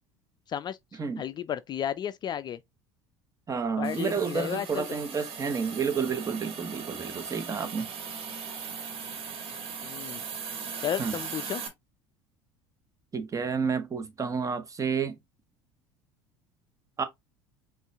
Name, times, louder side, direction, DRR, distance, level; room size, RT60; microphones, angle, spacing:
voice 1, 1.2-2.6 3.8-5.0 9.8-10.2 10.8-11.6, left 9 dB, 35° left, 0.4 m, -33 dB
voice 2, 3.5-7.9 11.0-11.1 13.1-15.2 17.0-17.1, right 5 dB, 25° right, 1.1 m, -30 dB
Hiss, 3.8-11.7, right 6 dB, 50° right, 1.6 m, -39 dB
5.3 x 2.5 x 3.4 m
hypercardioid pair, 75°, 12 cm